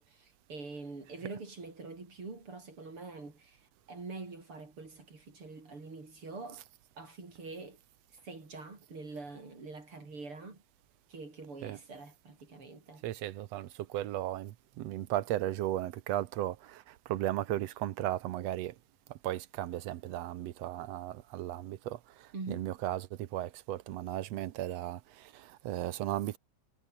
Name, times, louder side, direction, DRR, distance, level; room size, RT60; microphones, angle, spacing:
voice 1, 0.0-6.7 7.0-7.8 8.2-10.6 11.1-13.0 22.3-22.7, right 3 dB, 45° right, 5.9 m, -45 dB
voice 2, 13.0-18.8 19.1-26.4, right 13 dB, 70° right, 1.8 m, -36 dB
omnidirectional pair, 3.5 m